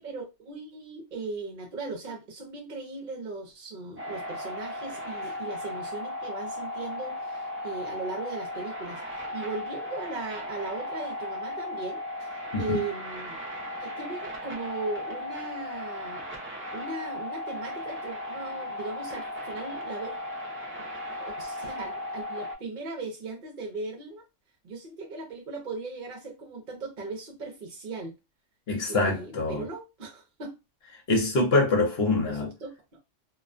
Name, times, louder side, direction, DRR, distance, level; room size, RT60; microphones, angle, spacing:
voice 1, 0.0-13.4 13.8-16.3 16.7-20.2 21.2-24.2 24.6-28.1 28.9-30.5 32.3-33.0, right 3 dB, 50° right, 0.7 m, -38 dB
sound 1, 4.0-22.6, left 1 dB, 20° right, 0.3 m, -36 dB
voice 2, 28.7-29.6 31.1-32.5, left 2 dB, 60° left, 0.9 m, -24 dB
2.3 x 2.1 x 2.5 m
omnidirectional pair, 1.3 m